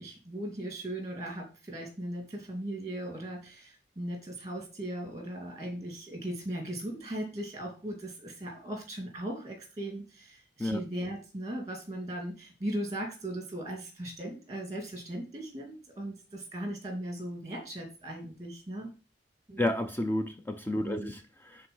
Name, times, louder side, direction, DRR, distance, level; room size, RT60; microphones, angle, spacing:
voice 1, 0.0-18.9 19.5-19.6 20.8-21.1, right 1 dB, 20° right, 2.5 m, -38 dB
voice 2, 19.6-21.7, left 1 dB, 10° left, 0.5 m, -31 dB
10.5 x 3.8 x 5.4 m
head